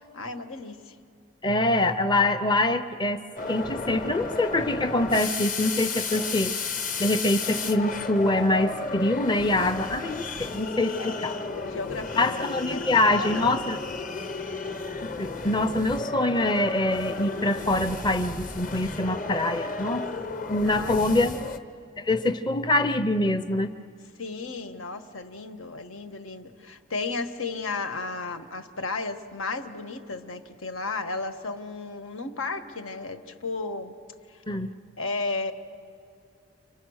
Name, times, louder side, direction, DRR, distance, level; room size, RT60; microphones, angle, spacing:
voice 1, 0.1-0.9 11.0-13.5 20.6-21.2 24.2-33.9 35.0-35.5, left 3 dB, 90° left, 8 dB, 1.3 m, -34 dB
voice 2, 1.4-3.2 3.5-6.5 7.0-11.4 12.1-13.8 15.0-20.0 20.5-21.4 22.0-23.7 34.5-34.7, left 2 dB, 20° left, 8 dB, 0.6 m, -24 dB
sound 1, 3.4-21.6, left 3 dB, 40° left, 1.0 m, -33 dB
29.5 x 25.0 x 6.4 m, 2.5 s
head